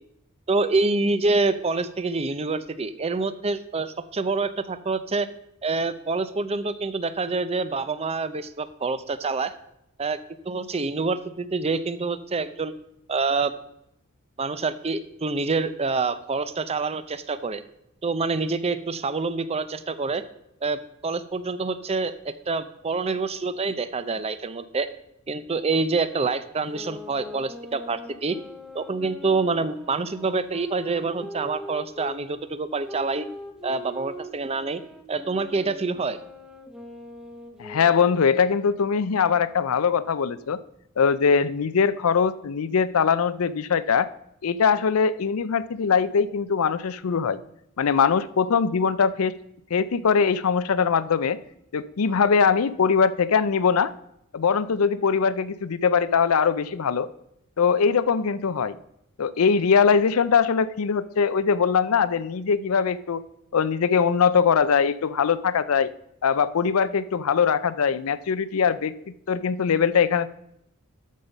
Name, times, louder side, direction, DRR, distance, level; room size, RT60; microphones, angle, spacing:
voice 1, 0.5-5.3 5.6-9.5 10.0-10.2 10.5-12.7 13.1-13.5 14.4-17.6 18.0-20.2 20.6-24.9 25.3-28.4 28.7-33.3 33.6-34.8 35.1-36.2, right 3 dB, 30° right, 13 dB, 0.5 m, -26 dB
sound 1, 26.7-32.2 32.8-38.4, left 1 dB, 5° right, 1.0 m, -41 dB
voice 2, 37.6-40.6 41.0-44.1 44.4-47.4 47.8-49.4 49.7-51.4 51.7-53.9 54.3-57.1 57.6-58.7 59.2-63.2 63.5-65.9 66.2-68.9 69.3-70.3, left 6 dB, 80° left, 16 dB, 0.5 m, -21 dB
13.0 x 5.5 x 5.3 m, 0.79 s
head